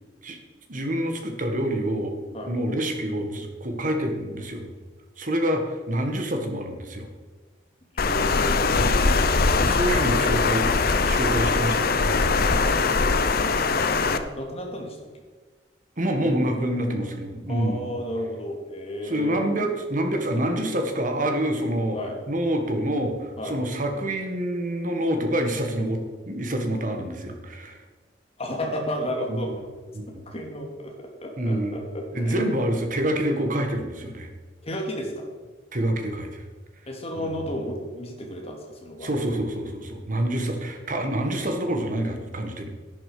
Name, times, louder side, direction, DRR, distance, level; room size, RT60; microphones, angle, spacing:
voice 1, 0.7-2.1 2.5-4.7 5.2-7.1 8.8-9.1 9.6-10.7 11.0-12.2 16.0-17.9 19.0-22.0 22.3-27.8 29.3-29.4 29.9-30.1 31.4-31.7 32.1-34.3 35.7-36.4 37.2-37.5 39.0-42.7, right 1 dB, 45° right, 4 dB, 1.8 m, -27 dB
voice 2, 7.9-8.7 12.4-12.9 13.4-15.2 16.1-16.5 17.5-19.4 21.9-22.2 23.4-23.6 28.4-29.5 30.3-32.5 34.6-35.3 36.9-39.3, equal, 35° left, 1 dB, 2.5 m, -33 dB
Water, 8.0-14.2, left 4 dB, 55° left, 0.8 m, -21 dB
11.0 x 10.5 x 5.2 m, 1.4 s
head